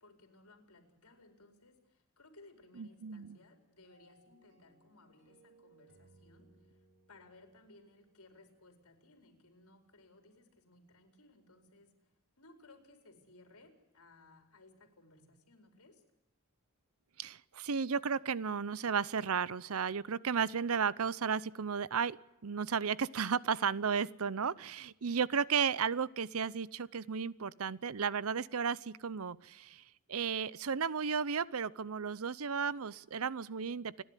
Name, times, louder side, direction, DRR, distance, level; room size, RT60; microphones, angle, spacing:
voice 1, 0.0-6.5 7.1-11.9 12.4-16.0, left 2 dB, 90° left, 5 dB, 4.5 m, -61 dB
voice 2, 2.8-3.4 17.2-22.2 22.4-29.8 30.1-34.0, right 6 dB, 75° right, 20 dB, 0.7 m, -34 dB
sound 1, 3.8-9.0, right 3 dB, 60° right, 6.6 m, -67 dB
29.0 x 11.0 x 10.0 m, 0.91 s
head